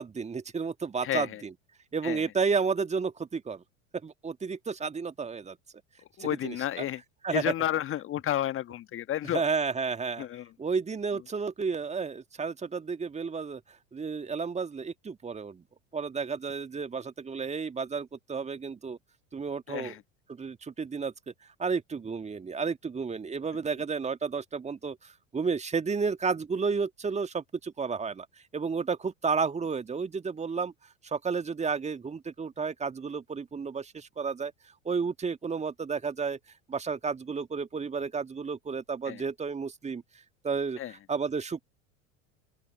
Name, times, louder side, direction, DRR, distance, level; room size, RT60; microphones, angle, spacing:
voice 1, 0.0-1.5 1.9-3.6 4.0-5.6 6.2-6.8 7.2-7.5 9.2-10.3 10.6-13.6 13.9-15.6 15.9-19.0 19.3-19.9 20.3-21.1 21.6-28.3 28.5-30.7 31.0-34.5 34.9-36.4 36.7-40.0 40.4-41.6, right 5 dB, 15° right, 1.9 m, -32 dB
voice 2, 1.0-1.4 2.0-2.2 6.2-7.0 7.3-9.4 10.2-10.5 19.7-20.0 39.1-39.2 40.8-40.9, left 12 dB, 30° left, 1.5 m, -31 dB
open air
figure-of-eight pair, 75°, 39 cm